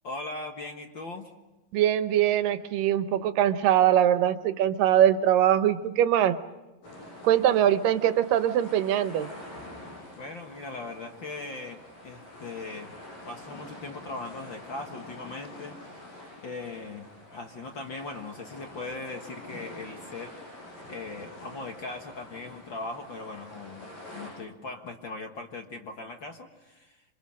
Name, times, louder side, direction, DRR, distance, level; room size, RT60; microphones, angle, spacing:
voice 1, 0.0-1.3 10.2-12.9 13.2-15.9 16.4-20.4 20.9-27.0, left 3 dB, 45° left, 4 dB, 1.7 m, -39 dB
voice 2, 1.7-6.4 7.2-9.3, right 11 dB, 85° right, 12 dB, 2.6 m, -22 dB
sound 1, 6.8-24.3, left 1 dB, 85° left, 9.5 m, -46 dB
27.0 x 26.5 x 6.4 m, 1.1 s
omnidirectional pair, 3.8 m